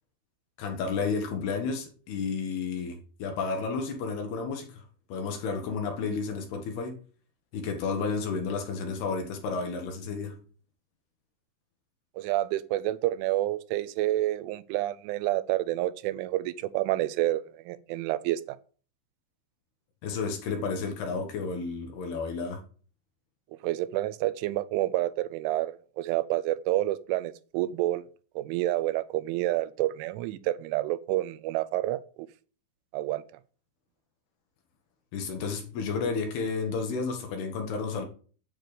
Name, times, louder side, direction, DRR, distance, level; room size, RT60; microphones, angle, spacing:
voice 1, 0.6-4.8 5.1-7.0 7.5-10.4 20.0-22.6 35.1-38.1, left 4 dB, 65° left, 3.0 m, -32 dB
voice 2, 12.2-18.6 23.6-28.0 28.4-32.0 32.9-33.2, right 15 dB, 85° right, 3.0 m, -29 dB
9.2 x 7.7 x 5.0 m
omnidirectional pair, 5.6 m